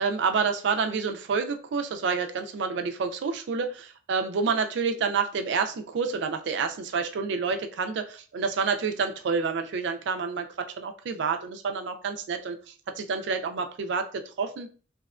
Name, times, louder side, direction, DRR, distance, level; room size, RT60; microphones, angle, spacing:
voice 1, 0.0-12.6 13.0-14.7, right 5 dB, 65° right, 7 dB, 0.3 m, -28 dB
2.7 x 2.2 x 2.3 m, 0.39 s
head